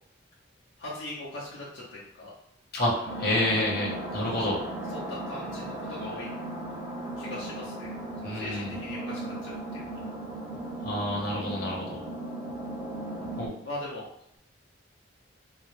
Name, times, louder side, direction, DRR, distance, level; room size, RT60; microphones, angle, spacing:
voice 1, 0.8-2.3 5.1-6.3 7.2-7.9 8.2-10.0 13.6-14.0, left 2 dB, 70° left, -6 dB, 0.7 m, -40 dB
voice 2, 2.7-4.6 8.2-8.8 10.8-12.0 13.4-13.5, left 1 dB, 50° left, -4 dB, 1.0 m, -29 dB
sound 1, 3.0-13.5, right 1 dB, 30° right, 0.6 m, -36 dB
3.8 x 2.1 x 3.1 m, 0.73 s
head